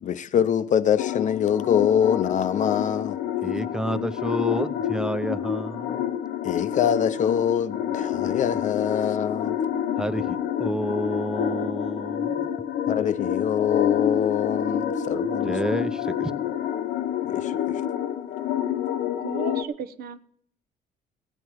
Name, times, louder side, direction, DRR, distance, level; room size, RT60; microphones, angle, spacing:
voice 1, 0.0-3.5 6.4-9.6 12.9-15.6 17.3-17.6, left 8 dB, 45° left, 0.6 m, -24 dB
sound 1, 1.0-19.6, left 9 dB, 70° left, 0.9 m, -28 dB
voice 2, 3.4-6.0 10.0-12.5 15.4-16.3, equal, 5° right, 0.6 m, -30 dB
voice 3, 19.2-20.2, right 7 dB, 65° right, 0.8 m, -34 dB
16.5 x 8.8 x 4.6 m
cardioid pair, 110°, 17 cm